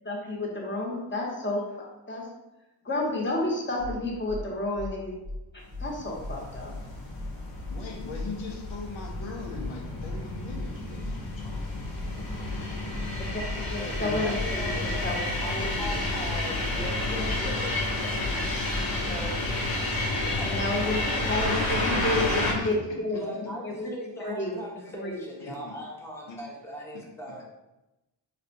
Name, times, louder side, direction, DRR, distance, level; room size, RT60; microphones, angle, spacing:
voice 1, 0.0-1.6 2.1-2.3 2.8-5.1 5.8-6.7 13.3-13.4 13.7-15.2 15.5-15.9 20.4-23.9 24.2-24.6 25.0-25.2, left 2 dB, 25° left, -3 dB, 1.0 m, -30 dB
sound 1, 3.8-3.9 4.3-4.4 4.7-4.9 5.2-5.4 5.7-5.9 6.2-6.3 6.7-6.8 7.1-7.3 7.6-7.8 8.1-8.3 8.6-8.7 9.1-9.2 9.5-9.7 10.0-10.2 10.5-10.7 11.0-11.1 11.5-11.6 11.9-12.1 12.4-12.6 12.9-13.1 13.4-13.5 13.9-14.0 14.3-14.5 14.8-15.0 15.3-15.5 15.8-15.9 16.3-16.4 16.7-16.9 17.2-17.4 17.7-17.9 18.2-18.3 18.7-18.8, left 2 dB, 20° right, 0.4 m, -36 dB
sound 2, 5.8-22.5, left 2 dB, 55° left, 0.8 m, -30 dB
voice 2, 7.7-11.8 22.1-22.7 25.4-25.8 26.3-26.4, left 3 dB, 90° left, -1 dB, 0.8 m, -40 dB
voice 3, 13.8-18.3 19.0-19.5 20.3-20.6 23.1-27.4, equal, 5° left, -3 dB, 0.7 m, -39 dB
4.1 x 2.1 x 2.6 m, 0.97 s
cardioid pair, 65°, 45 cm